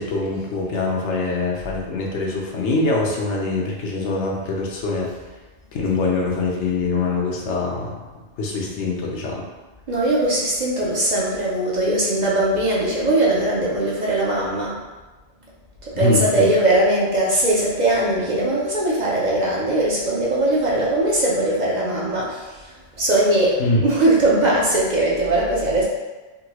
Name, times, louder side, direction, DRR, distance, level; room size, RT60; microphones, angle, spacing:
voice 1, 0.0-5.1 5.7-8.0 8.4-9.4 15.9-16.5 23.6-23.8, left 3 dB, 80° left, -2 dB, 1.0 m, -23 dB
voice 2, 9.9-14.8 15.8-22.5 23.0-25.8, right 1 dB, 50° right, -5 dB, 0.6 m, -20 dB
3.7 x 2.2 x 2.9 m, 1.2 s
omnidirectional pair, 1.2 m